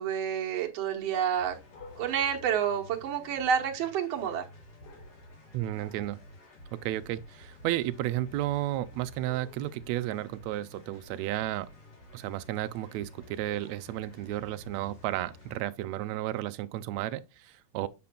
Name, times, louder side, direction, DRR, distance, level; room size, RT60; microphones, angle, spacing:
voice 1, 0.0-1.6 2.0-4.4, right 8 dB, 65° right, 2.1 m, -29 dB
sound 1, 1.1-3.6 4.8-5.4 5.8-6.3 9.2-9.9 13.4-14.1, left 4 dB, 40° left, 2.0 m, -53 dB
sound 2, 1.3-15.7, left 1 dB, 80° left, 4.6 m, -52 dB
voice 2, 5.5-6.2 6.7-11.7 12.1-17.9, right 14 dB, 80° right, 1.7 m, -33 dB
7.6 x 7.0 x 2.2 m
omnidirectional pair, 3.4 m